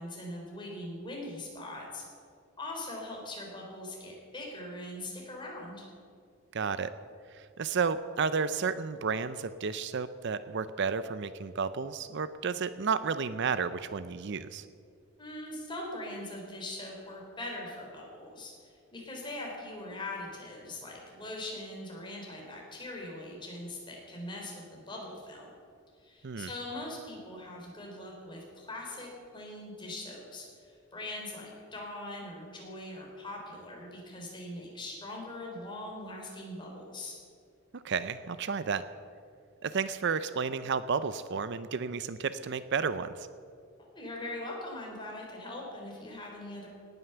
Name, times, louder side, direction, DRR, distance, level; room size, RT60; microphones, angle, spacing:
voice 1, 0.0-2.0 2.6-5.9 15.2-25.5 26.0-37.2 43.9-46.7, left 1 dB, 20° left, -1 dB, 3.7 m, -41 dB
voice 2, 6.5-6.9 7.3-14.6 26.2-26.5 37.7-38.8 39.6-43.3, right 5 dB, 55° right, 13 dB, 0.5 m, -32 dB
18.0 x 9.4 x 6.9 m, 2.2 s
head